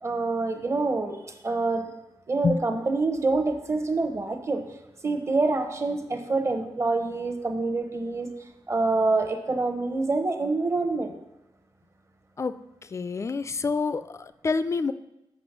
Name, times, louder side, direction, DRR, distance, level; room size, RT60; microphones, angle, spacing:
voice 1, 0.0-1.9 2.3-4.6 5.0-8.3 8.7-11.1, right 3 dB, 30° right, 6 dB, 0.8 m, -26 dB
voice 2, 12.4-14.9, left 4 dB, 30° left, 13 dB, 0.3 m, -28 dB
8.0 x 5.8 x 5.9 m, 0.91 s
wide cardioid pair, 170°, 9 cm